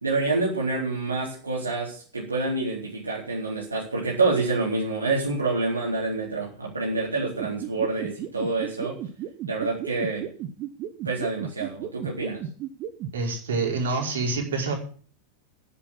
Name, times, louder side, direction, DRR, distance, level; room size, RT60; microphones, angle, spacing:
voice 1, 0.0-9.0 9.5-10.3 11.0-12.4, right 3 dB, 75° right, -4 dB, 4.0 m, -27 dB
sound 1, 7.2-13.1, right 12 dB, 35° right, 1.4 m, -33 dB
voice 2, 13.1-14.7, right 3 dB, 60° right, 0 dB, 5.0 m, -26 dB
10.5 x 8.4 x 10.0 m, 0.42 s
figure-of-eight pair, 90°, 0 cm